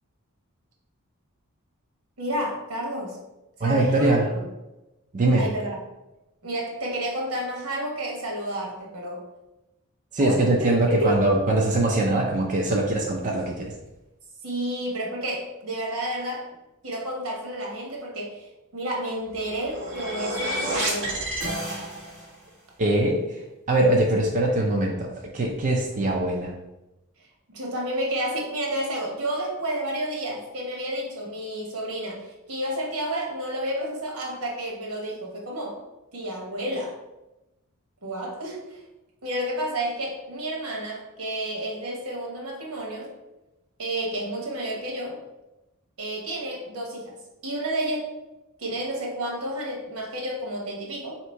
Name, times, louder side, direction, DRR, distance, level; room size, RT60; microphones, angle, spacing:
voice 1, 2.2-3.2 3.6-4.4 5.4-5.8 6.4-9.2 10.2-11.2 14.4-16.5 16.8-21.2 27.5-35.8 36.1-37.0 38.0-38.8 39.2-43.1 43.8-45.2 46.0-47.1 47.4-48.1 48.6-51.2, right 1 dB, 85° right, -1 dB, 1.2 m, -30 dB
voice 2, 3.6-4.3 5.1-5.5 10.1-13.7 22.8-25.1 25.3-26.5, right 2 dB, 35° right, -1 dB, 0.5 m, -22 dB
sound 1, 19.3-22.3, right 1 dB, 60° right, 1.3 m, -30 dB
3.5 x 2.9 x 4.4 m, 0.98 s
head